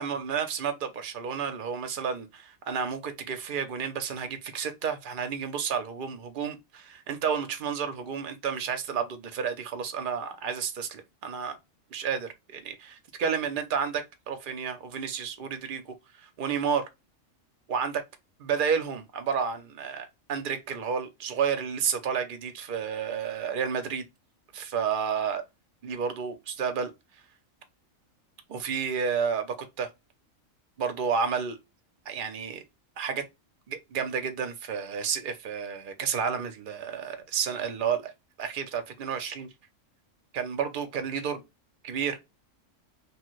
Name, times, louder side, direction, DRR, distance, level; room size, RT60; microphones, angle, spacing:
voice 1, 0.0-11.6 11.9-16.9 17.7-18.0 18.4-24.0 24.5-25.4 25.8-26.9 28.5-29.9 30.8-31.6 32.1-32.6 33.0-33.3 33.7-38.1 38.4-39.5 40.3-41.4 41.8-42.2, right 6 dB, 55° right, 0.6 m, -31 dB
3.0 x 2.1 x 3.0 m
omnidirectional pair, 1.4 m